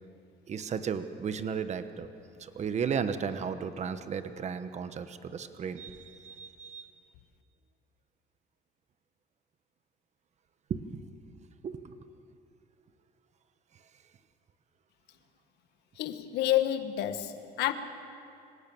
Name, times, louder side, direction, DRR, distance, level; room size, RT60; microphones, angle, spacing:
voice 1, 0.5-2.1 2.4-6.9 10.7-10.8 11.6-11.9, right 6 dB, 40° right, 1.2 m, -34 dB
voice 2, 16.0-17.7, left 13 dB, 80° left, 1.4 m, -29 dB
25.5 x 18.0 x 7.2 m
cardioid pair, 110°, 17 cm